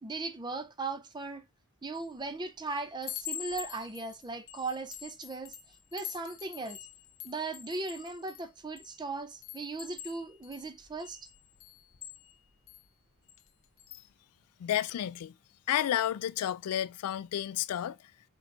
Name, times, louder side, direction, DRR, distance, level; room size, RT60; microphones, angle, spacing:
voice 1, 0.0-1.5 1.8-5.5 5.9-6.8 7.2-11.3, right 3 dB, 20° right, 0.5 m, -38 dB
Chime, 2.0-2.3 2.7-9.0 9.4-12.8 13.3-13.5 13.8-14.1, left 11 dB, 60° left, 0.8 m, -45 dB
voice 2, 14.6-15.3 15.7-18.0, left 11 dB, 80° left, 0.3 m, -31 dB
4.5 x 4.2 x 2.5 m
head